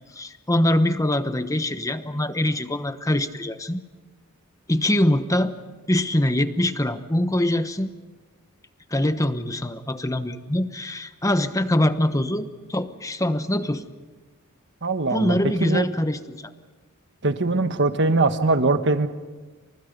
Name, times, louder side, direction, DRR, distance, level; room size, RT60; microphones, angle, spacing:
voice 1, 0.1-3.8 4.7-5.5 5.9-7.9 8.9-13.8 15.1-16.5, left 1 dB, 15° left, 10 dB, 1.1 m, -23 dB
voice 2, 14.8-15.9 17.2-19.1, right 3 dB, 55° right, 9 dB, 1.4 m, -21 dB
29.5 x 26.0 x 5.4 m, 1.3 s
head